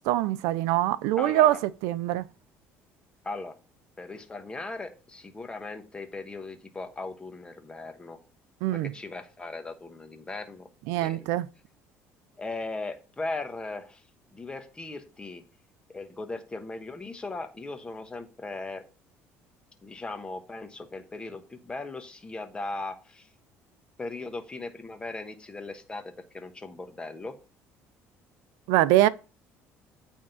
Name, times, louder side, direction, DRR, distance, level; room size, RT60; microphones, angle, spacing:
voice 1, 0.0-1.6 1.8-2.2 8.6-8.9 10.9-11.5 28.7-29.1, right 14 dB, 90° right, 0.5 m, -23 dB
voice 2, 1.2-1.6 3.2-3.5 4.0-8.2 8.7-10.7 11.0-11.3 12.4-14.0 14.3-15.4 15.9-18.8 19.8-23.3 24.0-27.4, left 3 dB, 15° left, 1.2 m, -38 dB
8.7 x 3.6 x 5.5 m
cardioid pair, 115°, 5 cm